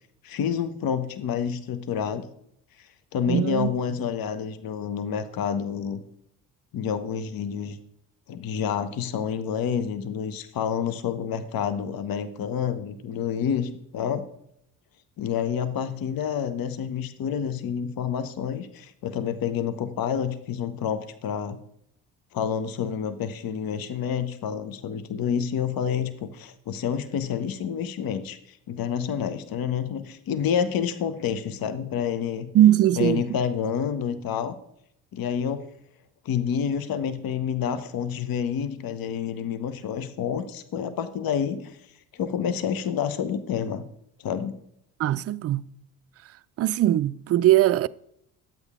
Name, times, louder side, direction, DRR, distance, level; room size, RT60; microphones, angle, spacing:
voice 1, 0.2-2.2 2.8-6.0 6.7-7.8 8.3-14.3 15.2-21.6 22.3-32.5 33.0-34.6 35.1-35.6 36.2-41.8 42.1-43.9 44.2-44.6, left 8 dB, 50° left, 0.9 m, -28 dB
voice 2, 3.3-3.7 32.5-33.4 45.0-45.7 46.6-47.9, right 13 dB, 35° right, 0.4 m, -20 dB
10.5 x 8.0 x 3.6 m
hypercardioid pair, 55°, 45 cm